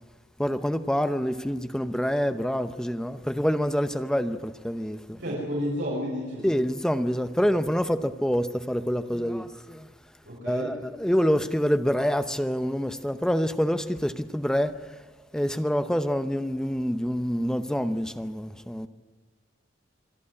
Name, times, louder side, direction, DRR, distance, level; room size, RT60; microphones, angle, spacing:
voice 1, 0.4-5.2 6.4-9.9 10.5-14.7 15.3-18.9, equal, 5° left, 0.8 m, -26 dB
voice 2, 5.2-6.5 10.3-10.8, equal, 65° right, 6.5 m, -31 dB
26.0 x 11.5 x 9.8 m
head